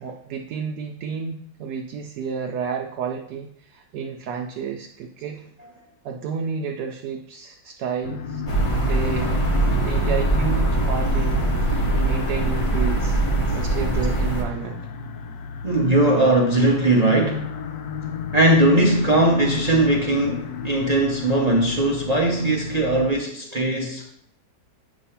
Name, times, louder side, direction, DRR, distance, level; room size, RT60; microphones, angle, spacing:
voice 1, 0.0-5.4 6.0-8.4 8.9-13.2 13.5-14.8, right 6 dB, 75° right, 2 dB, 1.1 m, -31 dB
sound 1, 8.0-23.1, left 5 dB, 75° left, 1.1 m, -33 dB
sound 2, 8.5-14.4, right 2 dB, 30° left, 0.6 m, -22 dB
voice 2, 15.6-17.5 18.3-24.1, right 1 dB, 50° right, -1 dB, 0.4 m, -19 dB
7.9 x 3.0 x 5.6 m, 0.69 s
omnidirectional pair, 1.8 m